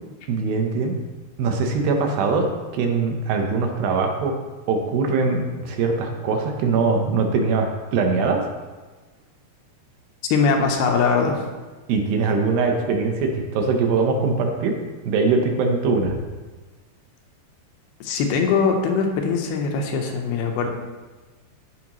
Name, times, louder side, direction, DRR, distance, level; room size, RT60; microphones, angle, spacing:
voice 1, 0.3-1.0 1.4-4.3 4.7-8.4 11.9-14.7 15.1-16.1, right 4 dB, 75° right, 3 dB, 2.6 m, -22 dB
voice 2, 10.3-11.4 18.0-20.7, left 5 dB, 80° left, 3 dB, 2.7 m, -21 dB
14.5 x 5.0 x 3.0 m, 1.3 s
omnidirectional pair, 4.5 m